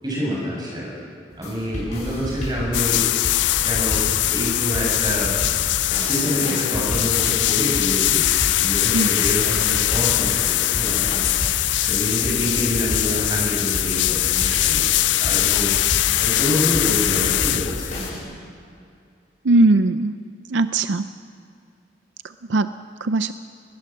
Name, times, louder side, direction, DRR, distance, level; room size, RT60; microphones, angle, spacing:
voice 1, 0.0-0.9 1.4-3.1 3.6-4.0 4.3-5.3 6.0-8.2 8.6-11.1 11.8-15.7 16.2-18.0, equal, 20° right, -4 dB, 7.8 m, -27 dB
sound 1, 1.3-18.2, equal, 40° left, 7.5 m, -31 dB
sound 2, 2.7-18.1, left 16 dB, 75° left, 0.4 m, -21 dB
voice 2, 19.4-20.2 20.5-21.1 22.5-22.7 23.0-23.3, right 2 dB, 80° right, 11 dB, 0.6 m, -18 dB
20.0 x 20.0 x 7.6 m, 2.3 s
head